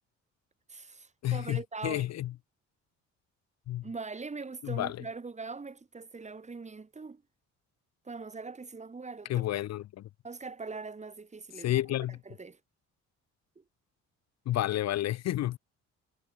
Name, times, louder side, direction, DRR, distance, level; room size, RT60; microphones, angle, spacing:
voice 1, 0.7-2.1 3.8-7.2 8.0-9.5 10.2-11.8 12.2-12.6 13.5-13.6, right 4 dB, 25° right, 1.5 m, -42 dB
voice 2, 1.2-2.3 3.7-3.8 4.6-5.0 9.3-10.0 11.6-12.2 14.5-15.6, left 13 dB, 60° left, 0.6 m, -30 dB
cardioid pair, 90°, 30 cm